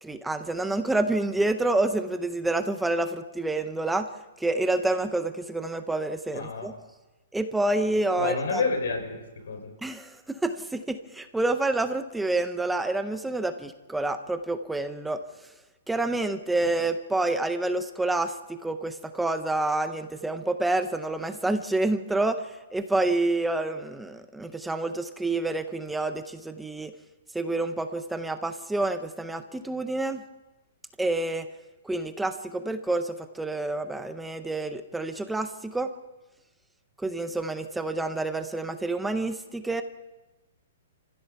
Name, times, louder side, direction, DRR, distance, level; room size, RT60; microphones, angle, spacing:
voice 1, 0.0-4.1 4.4-6.7 7.3-8.6 9.8-15.2 15.9-26.9 27.3-30.2 31.0-31.5 31.8-35.9 37.0-39.8, right 2 dB, 5° right, 0.6 m, -28 dB
voice 2, 6.3-6.7 8.2-9.7, left 4 dB, 85° left, 5.4 m, -29 dB
27.5 x 15.5 x 6.9 m
hypercardioid pair, 180°, 0 cm